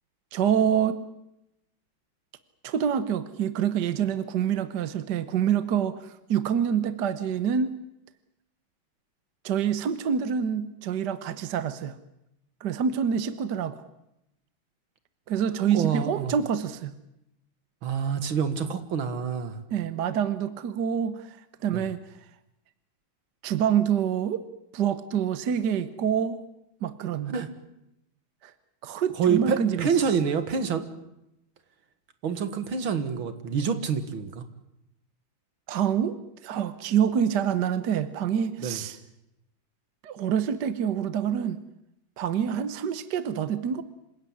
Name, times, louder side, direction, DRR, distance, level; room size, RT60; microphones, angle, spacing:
voice 1, 0.3-1.0 2.6-7.7 9.4-12.0 12.6-13.8 15.3-16.9 19.7-21.2 21.6-22.0 23.4-24.4 24.7-26.4 26.8-27.3 28.4-28.5 28.8-29.9 35.7-36.2 36.4-39.0 40.0-41.6 42.2-43.8, right 8 dB, 60° right, 13 dB, 1.6 m, -26 dB
voice 2, 15.7-16.3 17.8-19.6 21.7-21.8 27.3-27.5 29.2-30.9 32.2-34.4 38.6-38.8, right 6 dB, 80° right, 10 dB, 2.6 m, -27 dB
27.5 x 16.5 x 9.8 m, 0.84 s
omnidirectional pair, 2.2 m